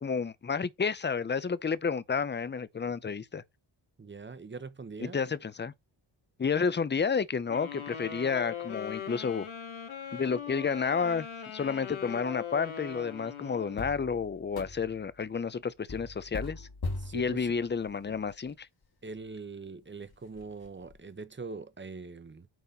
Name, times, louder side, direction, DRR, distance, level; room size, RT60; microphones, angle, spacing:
voice 1, 0.0-3.4 5.0-5.7 6.4-9.5 10.1-11.3 11.5-16.7 17.1-18.7, left 5 dB, 25° left, 0.5 m, -31 dB
voice 2, 4.0-5.2 17.0-17.5 18.1-18.2 19.0-22.5, right 4 dB, 25° right, 0.8 m, -42 dB
sound 1, 7.5-14.0, left 8 dB, 75° left, 1.9 m, -40 dB
sound 2, 13.8-15.1 15.9-18.5 19.1-19.2 19.7-19.8 20.1-21.0, left 2 dB, 50° left, 1.8 m, -41 dB
9.1 x 4.1 x 4.1 m
wide cardioid pair, 165°, 49 cm